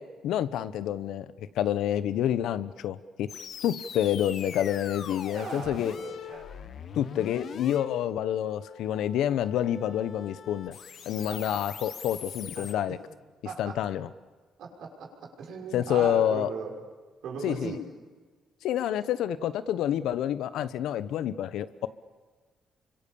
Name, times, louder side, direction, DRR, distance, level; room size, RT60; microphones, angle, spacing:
voice 1, 0.0-3.3 3.6-5.9 6.9-10.7 11.1-13.0 13.6-14.1 15.7-16.5 17.4-17.8 18.6-21.9, left 11 dB, 85° left, 14 dB, 1.0 m, -28 dB
sound 1, 3.3-12.7, left 7 dB, 60° left, 1.5 m, -42 dB
voice 2, 5.3-6.5 11.3-11.7 12.6-13.0 13.4-13.9 14.6-16.7 17.2-17.8, right 5 dB, 75° right, 0 dB, 6.3 m, -38 dB
29.5 x 25.0 x 7.1 m, 1.4 s
cardioid pair, 90°, 0 cm